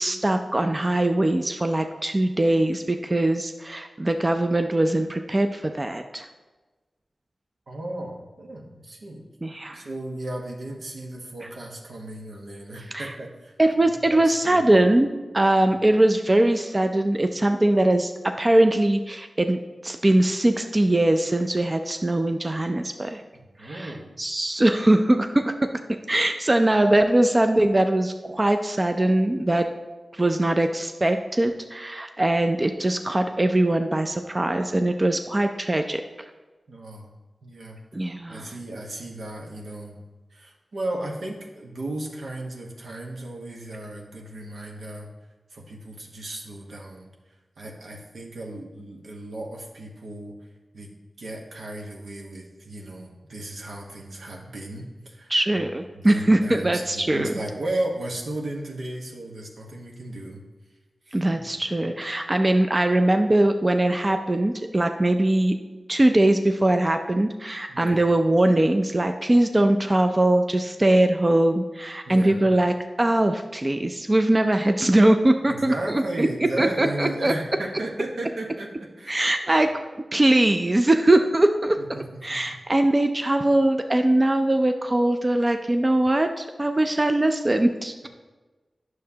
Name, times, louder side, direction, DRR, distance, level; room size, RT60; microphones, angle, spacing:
voice 1, 0.0-6.3 9.4-9.9 11.4-11.5 12.9-13.1 13.6-15.1 15.3-23.2 23.6-25.7 26.1-29.7 30.1-36.0 37.9-38.5 55.3-57.3 61.1-65.5 65.9-76.3 76.6-77.3 79.1-79.7 80.1-81.8 82.2-88.1, right 1 dB, 30° right, 6 dB, 0.4 m, -21 dB
voice 2, 7.7-9.3 9.7-13.5 14.1-14.6 15.6-15.7 23.3-24.2 36.7-37.1 37.4-37.8 38.3-40.0 40.3-45.1 45.5-47.1 47.6-50.4 50.7-50.9 51.2-55.3 55.9-60.4 61.1-61.3 67.7-68.0 72.1-72.4 75.5-79.3 81.8-82.5 88.0-88.1, right 1 dB, 85° right, 0 dB, 1.1 m, -35 dB
9.2 x 6.5 x 2.8 m, 1.2 s
cardioid pair, 50°, 0 cm